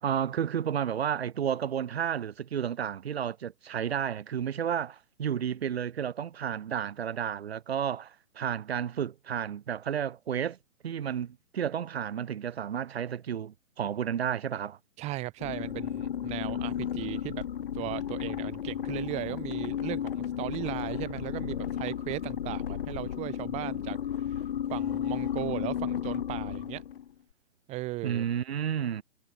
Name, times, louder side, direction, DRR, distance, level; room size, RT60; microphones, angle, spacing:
voice 1, 0.0-10.6 10.8-14.8 28.0-29.0, right 9 dB, 50° right, 3.6 m, -32 dB
voice 2, 15.0-17.4 17.7-26.8 27.7-28.2, right 19 dB, 15° right, 1.6 m, -37 dB
sound 1, 15.4-27.1, left 9 dB, 40° left, 1.2 m, -33 dB
figure-of-eight pair, 130°, 41 cm